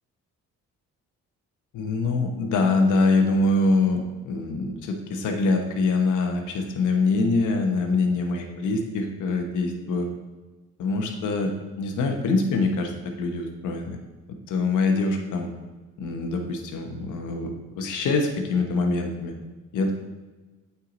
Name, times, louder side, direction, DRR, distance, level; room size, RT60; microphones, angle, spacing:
voice 1, 1.7-10.1 10.8-11.5 11.8-12.9 13.2-14.0 14.5-15.5 16.0-19.3 19.7-19.9, left 3 dB, 80° left, 3 dB, 1.2 m, -24 dB
8.4 x 4.8 x 3.9 m, 1.2 s
cardioid pair, 90°, 30 cm